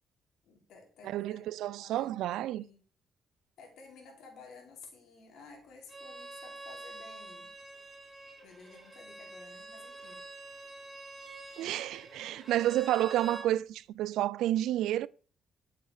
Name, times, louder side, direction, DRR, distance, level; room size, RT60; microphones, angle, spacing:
voice 1, 0.4-2.8 3.6-7.5 8.4-10.2, left 4 dB, 75° left, 4.5 m, -54 dB
voice 2, 1.0-2.6 11.6-15.1, right 13 dB, 85° right, 0.4 m, -30 dB
Bowed string instrument, 5.9-13.5, right 2 dB, 5° right, 4.1 m, -47 dB
11.0 x 8.4 x 5.0 m
cardioid pair, 90°, 0 cm